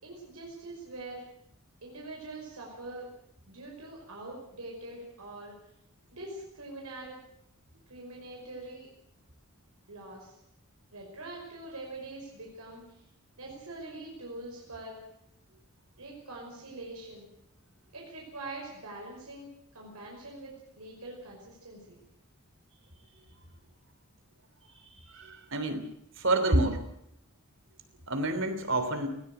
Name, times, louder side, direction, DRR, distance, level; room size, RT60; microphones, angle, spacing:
voice 1, 0.0-1.3 1.8-3.1 3.5-5.5 6.1-7.2 7.9-8.9 9.9-10.4 10.9-13.0 13.4-15.0 16.0-17.3 17.9-22.0, right 2 dB, 90° right, -1 dB, 5.6 m, -44 dB
voice 2, 25.1-25.9 26.2-26.9 28.1-29.1, right 2 dB, 60° right, 9 dB, 3.3 m, -28 dB
19.5 x 18.0 x 8.0 m, 0.73 s
head